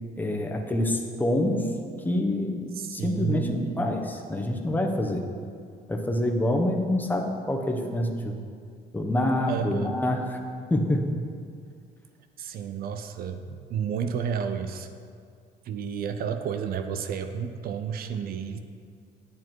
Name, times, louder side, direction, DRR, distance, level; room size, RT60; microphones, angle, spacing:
voice 1, 0.1-1.7 2.0-5.2 5.9-8.4 8.9-10.4 10.7-11.2, left 1 dB, 10° left, 2 dB, 1.2 m, -26 dB
voice 2, 2.8-3.9 9.5-9.9 12.4-14.9 15.6-18.6, right 7 dB, 65° right, 8 dB, 0.7 m, -31 dB
10.5 x 8.2 x 4.6 m, 2.2 s
cardioid pair, 110°, 17 cm